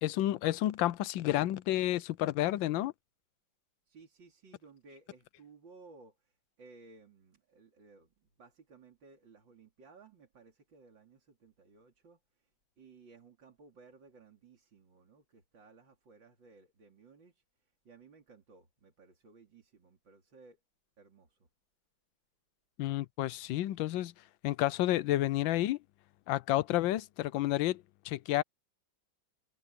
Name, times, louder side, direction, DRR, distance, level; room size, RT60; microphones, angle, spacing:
voice 1, 0.0-2.9 22.8-24.1 24.4-25.8 26.3-28.4, left 15 dB, 75° left, 1.3 m, -30 dB
voice 2, 3.9-20.6 21.0-21.5, right 4 dB, 70° right, 3.8 m, -59 dB
omnidirectional pair, 2.1 m